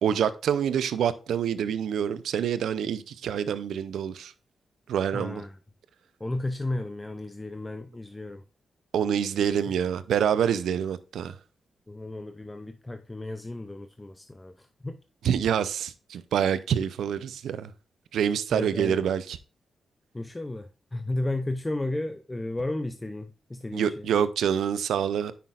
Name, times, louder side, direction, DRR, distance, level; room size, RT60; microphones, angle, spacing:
voice 1, 0.0-4.3 4.9-5.4 8.9-11.3 15.2-17.7 18.1-19.4 23.7-25.3, right 8 dB, 85° right, 0.5 m, -26 dB
voice 2, 5.1-5.6 6.2-8.4 11.9-15.0 18.5-19.1 20.1-24.1, left 2 dB, 15° left, 0.5 m, -33 dB
9.2 x 5.8 x 2.4 m
cardioid pair, 70°, 0 cm